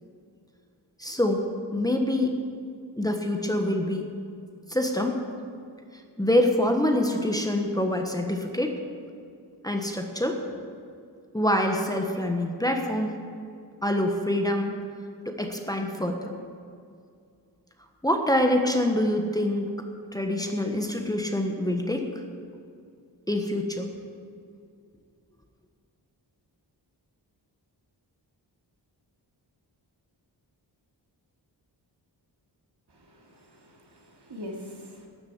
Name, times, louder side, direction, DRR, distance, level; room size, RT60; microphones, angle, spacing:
voice 1, 1.0-1.4 1.7-2.4 3.0-4.0 4.7-5.2 6.2-8.7 9.6-10.4 11.3-13.2 13.8-14.7 15.2-16.3 18.0-19.7 20.1-22.1 23.3-23.9, left 1 dB, 10° left, 2 dB, 1.3 m, -25 dB
voice 2, 32.9-35.1, left 1 dB, 65° right, -1 dB, 2.7 m, -43 dB
13.0 x 7.3 x 9.5 m, 2.3 s
wide cardioid pair, 75°, 43 cm